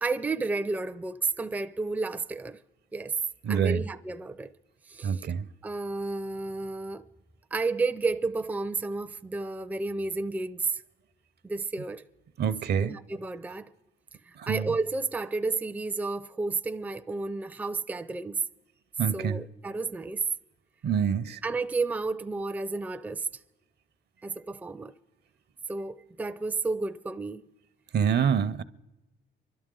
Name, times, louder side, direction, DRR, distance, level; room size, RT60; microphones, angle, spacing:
voice 1, 0.0-2.6 2.9-3.1 3.5-4.5 4.9-5.2 5.6-7.0 7.5-10.8 11.4-12.0 12.7-13.7 14.3-18.4 19.1-20.2 21.4-23.3 24.2-24.9 25.7-27.4, right 3 dB, 10° right, 0.4 m, -31 dB
voice 2, 3.4-3.8 5.0-5.5 12.4-12.9 14.4-14.7 19.0-19.4 20.8-21.4 27.9-28.6, right 7 dB, 55° right, 0.6 m, -26 dB
25.5 x 12.0 x 3.8 m
cardioid pair, 90°, 20 cm